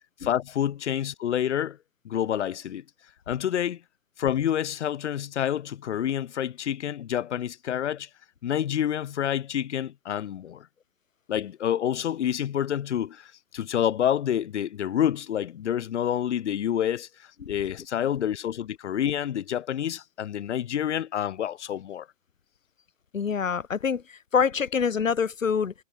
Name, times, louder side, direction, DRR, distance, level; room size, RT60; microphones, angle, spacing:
voice 1, 0.2-1.8 2.0-2.8 3.3-3.8 4.2-8.1 8.4-10.7 11.3-22.1, left 10 dB, 60° left, 4.7 m, -28 dB
voice 2, 23.1-25.7, left 6 dB, 80° left, 2.9 m, -25 dB
hypercardioid pair, 125°, 39 cm